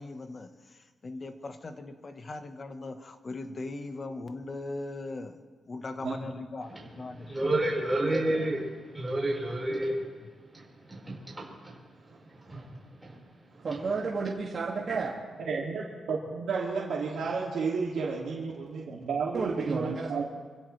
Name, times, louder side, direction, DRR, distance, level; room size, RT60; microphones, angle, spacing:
voice 1, 0.0-5.4 5.7-7.3, left 2 dB, 35° left, 7 dB, 1.2 m, -39 dB
voice 2, 6.7-10.1 10.4-13.2 13.5-13.6, right 1 dB, 10° right, -4 dB, 4.8 m, -32 dB
voice 3, 13.6-15.1 19.3-20.2, right 4 dB, 45° right, -3 dB, 2.2 m, -31 dB
voice 4, 15.4-20.2, right 5 dB, 85° right, -5 dB, 2.4 m, -32 dB
26.0 x 16.0 x 3.3 m, 1.5 s
wide cardioid pair, 130°, 0 cm